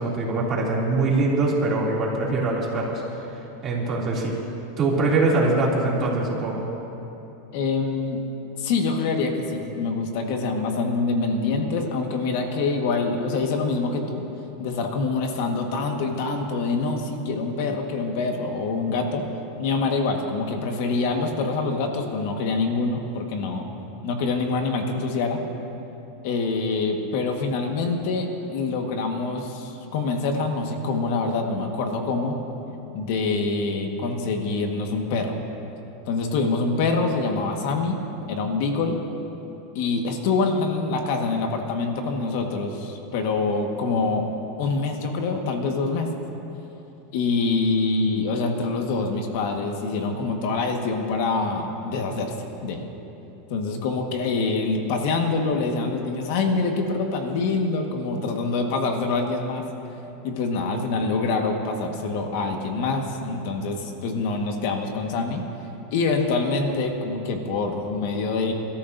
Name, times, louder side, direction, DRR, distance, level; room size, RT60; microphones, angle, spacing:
voice 1, 0.0-3.0 3.6-4.4 4.8-6.7, right 2 dB, 30° right, -3 dB, 2.7 m, -23 dB
voice 2, 7.5-8.2 8.6-14.2 14.6-19.3 19.6-23.7 24.0-25.4 26.2-32.4 32.9-35.4 36.1-38.0 38.3-39.0 39.7-44.3 44.6-46.1 47.1-52.3 52.6-52.9 53.5-59.6 60.2-65.4 65.9-68.5, left 3 dB, 60° left, 3 dB, 1.5 m, -25 dB
27.5 x 13.5 x 2.7 m, 3.0 s
supercardioid pair, 145°, 0 cm